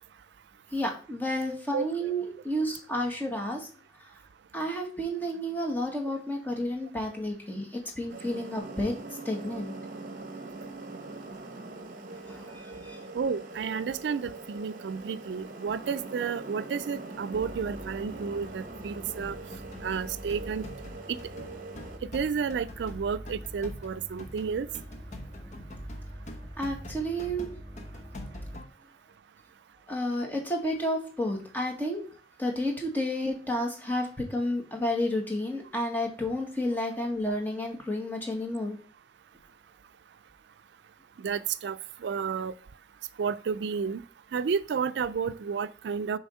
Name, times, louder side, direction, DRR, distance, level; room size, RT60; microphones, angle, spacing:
voice 1, 0.7-3.7 4.5-8.9 9.2-9.8 12.2-13.0 26.6-27.5 29.9-32.0 32.4-38.8, equal, 10° left, 1.5 m, -31 dB
sound 1, 8.1-22.0, right 2 dB, 50° right, 1.0 m, -42 dB
voice 2, 13.1-19.4 19.8-20.6 21.1-21.2 22.1-24.7 41.2-42.5 43.2-44.0 44.3-46.2, right 6 dB, 80° right, 0.4 m, -31 dB
sound 2, 17.3-28.6, equal, 20° right, 1.8 m, -45 dB
sound 3, 19.2-28.7, left 1 dB, 45° left, 0.9 m, -46 dB
7.0 x 3.4 x 5.5 m
head